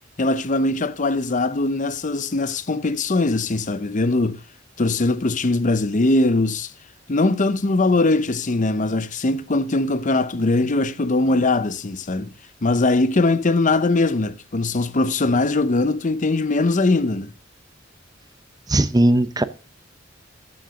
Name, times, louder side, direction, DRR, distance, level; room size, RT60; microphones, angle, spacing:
voice 1, 0.2-4.4 4.8-6.7 7.1-12.3 12.6-17.3, left 2 dB, 40° left, 0.7 m, -21 dB
voice 2, 18.7-19.4, right 1 dB, 20° right, 0.7 m, -17 dB
13.5 x 6.5 x 6.2 m
head